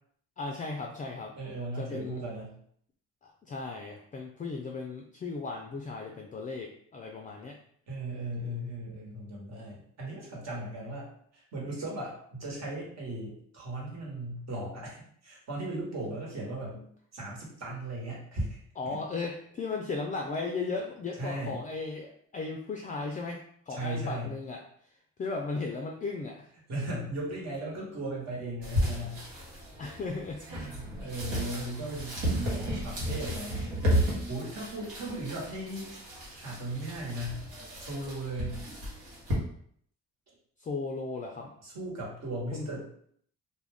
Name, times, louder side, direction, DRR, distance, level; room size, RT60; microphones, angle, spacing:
voice 1, 0.4-1.3 1.7-2.2 3.2-7.6 16.7-16.9 18.8-26.5 29.8-30.4 40.6-41.5 42.5-42.7, left 3 dB, 25° left, 1 dB, 0.3 m, -36 dB
voice 2, 1.4-2.6 7.9-16.8 17.1-18.6 21.2-21.5 23.7-24.3 26.7-29.2 30.5-34.0 34.3-35.9 36.4-37.4 37.8-38.6 41.6-42.8, right 1 dB, 60° right, -3 dB, 1.2 m, -37 dB
sound 1, 28.6-39.3, equal, 85° right, 1.1 m, -33 dB
2.3 x 2.2 x 3.4 m, 0.64 s
cardioid pair, 90°, 30 cm